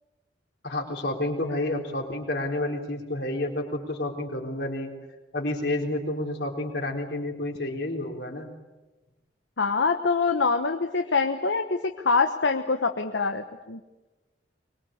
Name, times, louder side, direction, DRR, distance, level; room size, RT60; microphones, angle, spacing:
voice 1, 0.6-4.9 5.3-8.5, left 1 dB, 65° left, 2 dB, 4.0 m, -30 dB
voice 2, 9.6-13.8, left 4 dB, 80° left, 6 dB, 1.1 m, -25 dB
23.5 x 22.0 x 8.8 m, 1.1 s
head